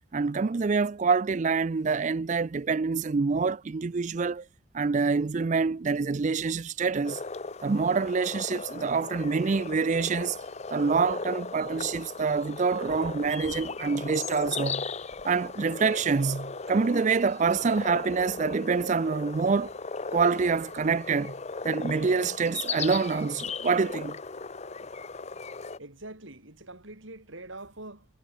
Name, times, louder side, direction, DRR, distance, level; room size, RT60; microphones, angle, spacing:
voice 1, 0.1-4.4 4.7-7.2 7.6-10.4 10.7-14.9 15.2-19.7 20.1-21.3 21.6-24.2, right 4 dB, 35° right, 0.4 m, -26 dB
sound 1, 7.0-25.8, left 4 dB, 30° left, 0.8 m, -37 dB
sound 2, 11.1-11.2 11.6-15.4 15.7-16.2, equal, 10° right, 2.3 m, -52 dB
voice 2, 25.8-28.1, right 2 dB, 65° right, 5.1 m, -44 dB
head